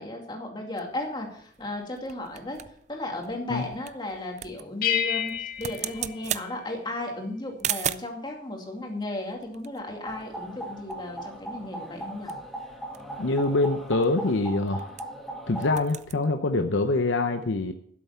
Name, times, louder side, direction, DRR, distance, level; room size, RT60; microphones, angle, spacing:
voice 1, 0.0-2.6 2.9-12.3, left 1 dB, 25° left, 1 dB, 2.4 m, -35 dB
sound 1, 0.8-8.2 9.0-10.6 10.9-11.0 11.3-11.6 12.0-15.3 15.5-16.2, right 11 dB, 40° right, 0.4 m, -38 dB
sound 2, 4.8-7.0, left 9 dB, 50° left, 1.6 m, -30 dB
sound 3, 10.1-15.7, right 1 dB, ahead, 1.5 m, -39 dB
voice 2, 13.2-15.0 15.5-17.7, left 2 dB, 80° left, 6 dB, 0.8 m, -25 dB
12.0 x 7.7 x 5.7 m, 0.63 s
head